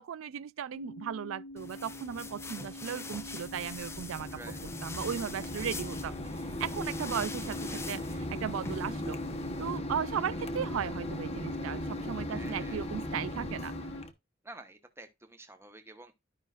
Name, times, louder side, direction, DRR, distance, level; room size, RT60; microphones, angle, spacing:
voice 1, 0.0-9.2 9.6-13.7, right 8 dB, 85° right, 0.4 m, -36 dB
sound 1, 0.7-14.0, left 1 dB, 85° left, 1.4 m, -45 dB
sound 2, 1.6-9.8, left 3 dB, 15° left, 0.5 m, -44 dB
Mechanisms, 3.1-14.1, left 1 dB, 30° left, 0.9 m, -38 dB
voice 2, 4.3-4.7 12.3-12.8 14.4-16.1, right 2 dB, 10° right, 1.1 m, -49 dB
12.0 x 5.6 x 2.4 m
head